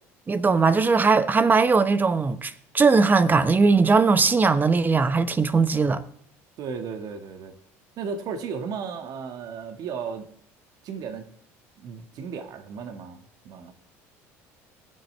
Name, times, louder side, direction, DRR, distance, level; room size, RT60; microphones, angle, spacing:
voice 1, 0.3-6.0, right 4 dB, 25° right, 0.8 m, -20 dB
voice 2, 6.6-7.5 8.0-10.3 10.8-11.2 11.8-13.7, right 6 dB, 60° right, 1.5 m, -35 dB
19.5 x 7.7 x 3.3 m
supercardioid pair, 80°, 7 cm